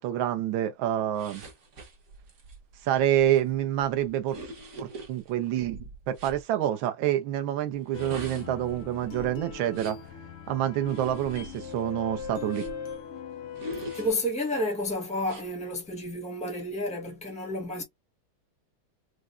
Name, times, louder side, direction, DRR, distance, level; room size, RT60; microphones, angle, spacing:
voice 1, 0.0-1.4 2.8-4.4 4.8-10.0 10.5-12.7, right 11 dB, 75° right, 1.3 m, -27 dB
sound 1, 1.1-6.4 7.8-10.1 10.8-12.9 13.5-14.6 15.2-15.5, right 1 dB, 50° right, 1.0 m, -44 dB
sound 2, 7.9-14.1, left 6 dB, 80° left, 2.0 m, -40 dB
voice 2, 13.9-17.8, left 1 dB, 5° left, 0.5 m, -31 dB
4.7 x 2.1 x 2.5 m
omnidirectional pair, 2.4 m